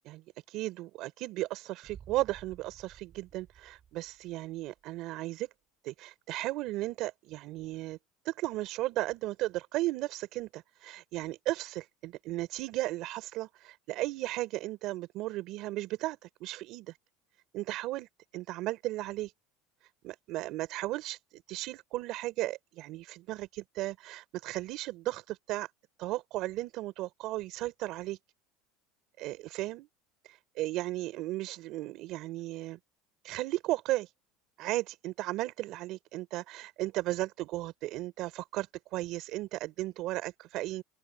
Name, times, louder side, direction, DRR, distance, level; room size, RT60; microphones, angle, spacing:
voice 1, 0.0-5.5 5.8-8.0 8.2-17.0 17.5-19.3 19.8-25.7 26.0-28.2 29.2-29.9 30.2-32.8 33.2-34.1 34.6-40.8, right 17 dB, 55° right, 3.8 m, -35 dB
Boom, 1.8-4.8, right 8 dB, 35° right, 6.1 m, -54 dB
open air
supercardioid pair, 130°, 0 cm